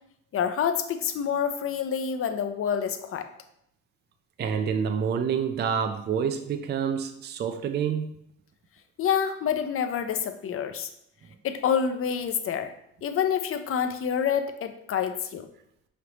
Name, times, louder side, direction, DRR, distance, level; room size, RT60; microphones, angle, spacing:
voice 1, 0.3-3.3 9.0-10.9 11.4-12.7 13.0-15.5, left 8 dB, 45° left, 8 dB, 0.5 m, -27 dB
voice 2, 4.4-8.1, right 7 dB, 35° right, 7 dB, 0.4 m, -27 dB
5.0 x 3.2 x 2.9 m, 0.75 s
cardioid pair, 90°, 30 cm